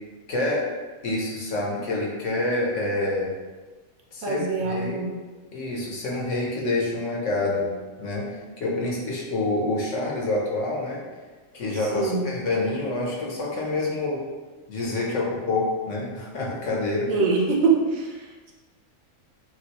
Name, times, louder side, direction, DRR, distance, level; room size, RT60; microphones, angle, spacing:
voice 1, 0.3-0.7 1.0-3.3 4.1-5.0 5.5-7.7 8.0-8.3 8.6-11.0 11.5-14.2 14.7-17.1, left 2 dB, 70° left, -3 dB, 1.3 m, -27 dB
voice 2, 4.2-5.1 11.7-12.3 17.1-18.5, right 4 dB, 90° right, -1 dB, 1.2 m, -24 dB
6.1 x 2.6 x 3.0 m, 1.3 s
omnidirectional pair, 1.4 m